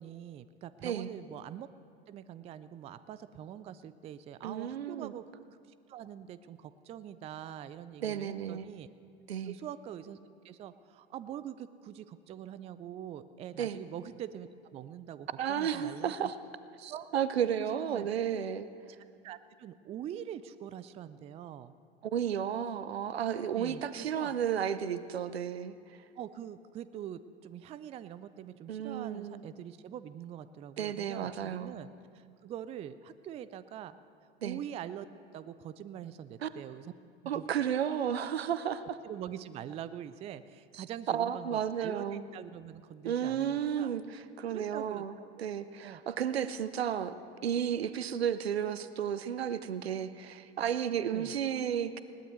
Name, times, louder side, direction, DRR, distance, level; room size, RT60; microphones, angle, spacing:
voice 1, 0.0-1.7 2.1-5.2 5.9-8.9 9.4-10.2 10.4-16.3 16.9-17.1 17.7-18.1 19.2-21.8 23.6-24.4 26.2-31.9 32.1-34.0 34.4-35.1 35.3-36.9 37.2-37.5 39.0-43.9 44.5-45.4 45.8-46.0 51.1-51.3, right 10 dB, 20° right, 14 dB, 0.4 m, -44 dB
voice 2, 4.4-5.1 8.0-8.7 9.3-9.6 13.6-13.8 15.4-16.3 16.8-18.7 22.1-25.7 28.7-29.4 30.8-31.7 34.4-34.6 36.4-36.5 37.3-39.0 41.1-42.2 43.0-47.1 47.4-52.0, right 9 dB, 75° right, 13 dB, 0.7 m, -33 dB
20.5 x 18.0 x 3.1 m, 2.3 s
figure-of-eight pair, 80°, 32 cm